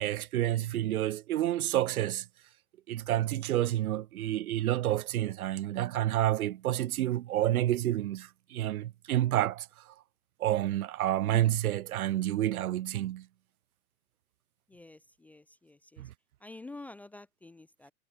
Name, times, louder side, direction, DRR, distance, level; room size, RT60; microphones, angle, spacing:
voice 1, 0.0-2.3 2.9-9.7 10.4-13.3 16.0-16.1, right 13 dB, 80° right, 0.6 m, -29 dB
voice 2, 14.7-16.1 16.4-17.9, left 2 dB, 5° left, 0.4 m, -49 dB
hypercardioid pair, 120°, 42 cm